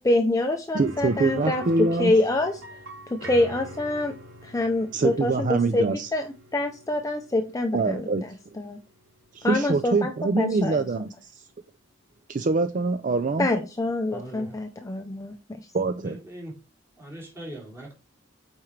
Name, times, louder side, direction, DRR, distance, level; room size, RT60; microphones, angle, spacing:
voice 1, 0.0-1.6 2.0-2.6 3.1-4.1 4.4-8.8 9.4-10.1 10.4-10.9 13.4-15.6, left 2 dB, 15° left, 0.5 m, -26 dB
voice 2, 0.7-2.1 4.9-6.1 7.7-8.2 9.3-11.4 12.3-13.5 15.7-16.2, right 3 dB, 40° right, 0.4 m, -24 dB
sound 1, 0.7-10.5 10.8-10.9 13.4-13.5, left 1 dB, 85° right, 2.7 m, -44 dB
voice 3, 14.1-14.6 16.0-16.5 17.0-17.9, right 1 dB, 15° right, 3.1 m, -40 dB
8.5 x 4.5 x 3.2 m
head